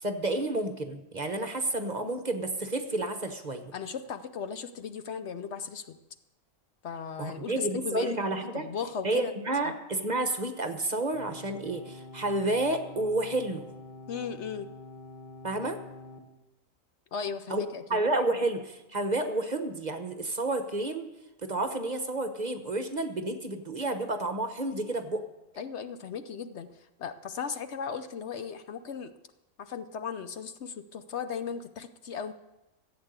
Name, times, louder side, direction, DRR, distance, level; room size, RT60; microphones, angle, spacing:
voice 1, 0.0-3.7 7.2-8.7 9.0-13.7 15.4-15.8 17.5-17.6 17.9-21.1 21.4-25.2, right 2 dB, 35° right, 7 dB, 1.0 m, -30 dB
voice 2, 3.7-6.0 6.8-8.2 8.5-9.3 9.6-9.7 14.1-14.7 17.1-18.0 25.6-29.1 29.6-32.3, left 6 dB, 65° left, 10 dB, 0.9 m, -36 dB
sound 1, 11.1-16.2, left 3 dB, 35° left, 1.7 m, -46 dB
14.5 x 8.0 x 8.0 m, 0.98 s
omnidirectional pair, 1.4 m